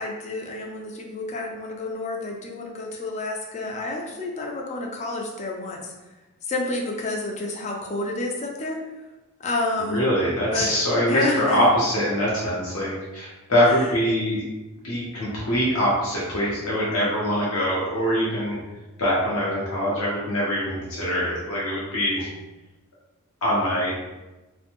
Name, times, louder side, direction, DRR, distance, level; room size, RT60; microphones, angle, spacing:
voice 1, 0.0-5.9 6.4-8.8 9.4-10.0 10.5-11.6 13.6-13.9, left 2 dB, 30° left, 1 dB, 0.4 m, -29 dB
voice 2, 9.9-14.4 14.8-18.6 19.0-22.3 23.4-23.9, equal, 70° left, -6 dB, 0.7 m, -23 dB
2.5 x 2.1 x 2.8 m, 1.1 s
head